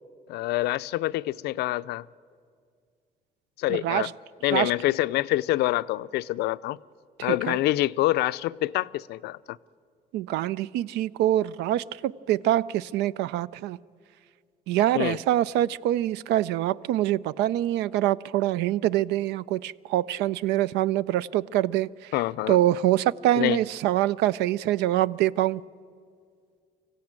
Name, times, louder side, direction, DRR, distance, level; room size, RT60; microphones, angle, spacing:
voice 1, 0.3-2.0 3.6-4.1 4.4-6.8 7.2-9.6 14.9-15.2 22.1-22.6 23.4-23.6, left 16 dB, 80° left, 0.5 m, -26 dB
voice 2, 3.7-4.1 4.5-4.7 7.3-7.6 10.1-13.8 14.7-22.1 22.5-25.6, right 13 dB, 85° right, 0.5 m, -25 dB
25.0 x 15.5 x 8.9 m
cardioid pair, 110°, 17 cm